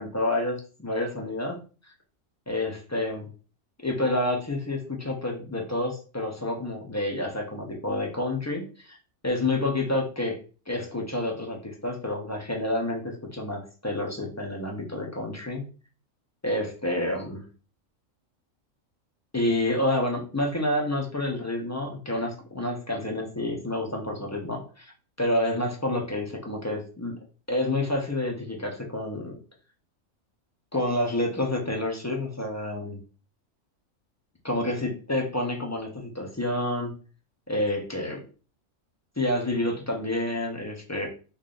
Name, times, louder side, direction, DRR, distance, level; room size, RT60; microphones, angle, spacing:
voice 1, 0.0-1.6 2.5-3.3 3.8-9.0 9.2-10.4 10.7-15.7 16.4-17.4 19.3-24.9 25.2-27.1 27.5-29.4 30.7-33.0 34.4-36.9 37.5-38.2 39.2-41.1, left 1 dB, 25° left, 0 dB, 0.3 m, -29 dB
3.2 x 2.4 x 3.8 m, 0.36 s
omnidirectional pair, 1.4 m